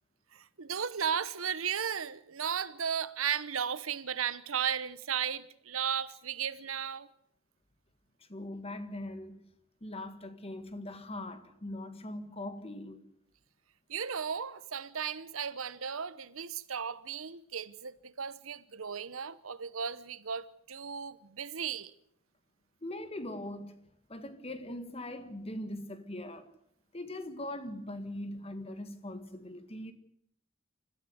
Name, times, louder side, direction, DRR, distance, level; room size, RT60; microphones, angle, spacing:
voice 1, 0.3-7.1 13.9-21.9, right 7 dB, 85° right, 1.0 m, -35 dB
voice 2, 8.3-9.4 9.8-13.0 22.8-23.8 24.1-26.5 26.9-29.9, left 1 dB, 30° left, 1.8 m, -41 dB
25.5 x 14.0 x 8.0 m
head